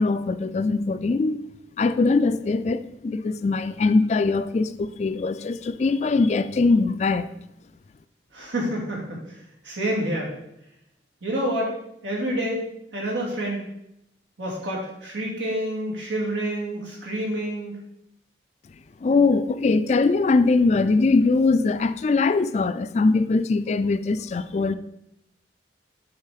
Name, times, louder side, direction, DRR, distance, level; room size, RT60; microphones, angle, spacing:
voice 1, 0.0-1.4 1.8-7.3 19.0-24.7, left 3 dB, 35° left, 0.3 m, -21 dB
voice 2, 8.3-9.4 9.6-10.3 11.2-11.7 12.0-12.6 12.9-13.6 14.4-17.8, right 1 dB, 90° right, 2.5 m, -28 dB
8.2 x 4.3 x 4.9 m
head